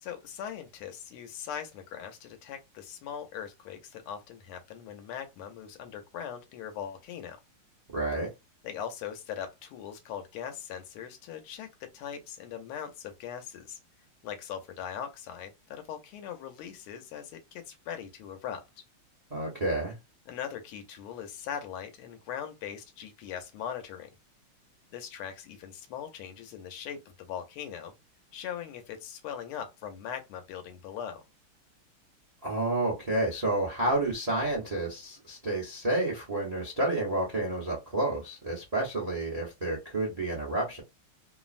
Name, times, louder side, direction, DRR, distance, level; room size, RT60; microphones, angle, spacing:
voice 1, 0.0-7.4 8.6-13.8 14.2-18.6 20.3-24.1 24.9-27.9 28.3-31.2, left 8 dB, 85° left, 1.6 m, -40 dB
voice 2, 7.9-8.3 19.3-20.0 32.4-40.8, right 2 dB, 50° right, 0.4 m, -30 dB
3.6 x 2.0 x 2.4 m
omnidirectional pair, 2.4 m